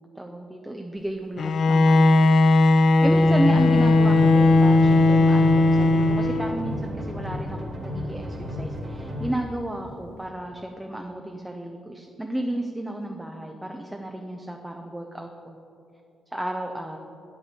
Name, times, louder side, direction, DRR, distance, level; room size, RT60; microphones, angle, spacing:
voice 1, 0.2-2.3 2.6-15.6 16.3-17.0, right 1 dB, 5° right, 3 dB, 0.6 m, -32 dB
Bowed string instrument, 1.4-6.7, left 2 dB, 55° left, 0.4 m, -17 dB
sound 1, 3.0-9.3, left 1 dB, 30° right, 1.7 m, -33 dB
8.1 x 8.0 x 4.3 m, 2.6 s
cardioid pair, 90°, 0 cm